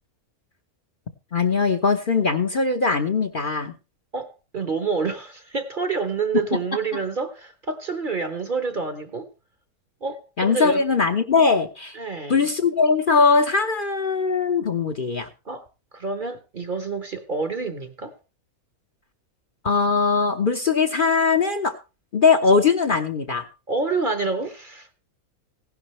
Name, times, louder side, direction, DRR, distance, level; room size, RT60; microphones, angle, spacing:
voice 1, 1.3-3.7 10.4-12.0 12.3-15.3 19.6-21.7 22.1-23.4, left 4 dB, 40° left, 1.0 m, -20 dB
voice 2, 4.1-9.3 10.0-10.8 11.9-12.5 15.4-15.7 15.9-18.2 23.7-24.9, right 4 dB, 40° right, 1.1 m, -28 dB
16.0 x 11.0 x 3.1 m
omnidirectional pair, 1.5 m